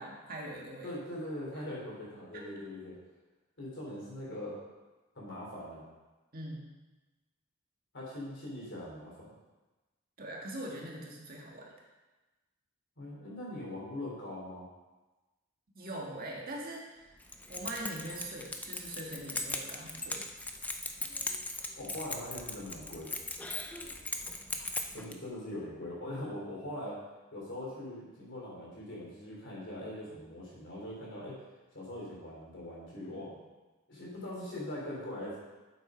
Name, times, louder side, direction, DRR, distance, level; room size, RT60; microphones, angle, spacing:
voice 1, 0.0-0.9 2.3-2.5 6.3-6.6 10.2-11.7 15.7-17.1 17.5-20.3, right 1 dB, 40° right, -2 dB, 1.7 m, -42 dB
voice 2, 0.8-3.0 3.6-4.6 5.2-5.8 7.9-9.3 13.0-14.7 21.8-23.1 24.9-27.0 27.3-31.4 31.7-33.4 33.9-35.4, left 1 dB, 55° left, -5 dB, 3.6 m, -41 dB
Keys jangling, 17.2-25.1, left 2 dB, 5° left, 0.5 m, -39 dB
8.0 x 7.7 x 5.1 m, 1.2 s
head